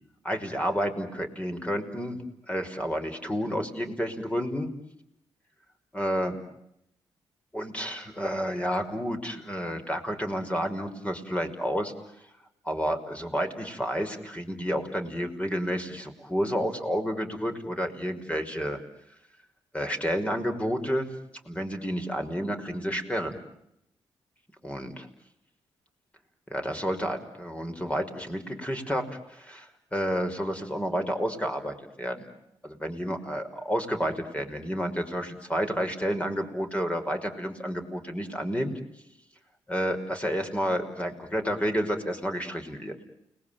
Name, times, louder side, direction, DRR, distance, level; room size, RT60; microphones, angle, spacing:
voice 1, 0.2-2.2 2.5-4.7 5.9-6.4 7.5-11.9 12.6-18.8 19.7-21.1 21.5-23.4 24.6-25.1 26.5-32.2 32.6-38.7 39.7-43.0, equal, 10° left, 5 dB, 5.7 m, -30 dB
30.0 x 21.0 x 9.4 m, 0.80 s
supercardioid pair, 55°, 11 cm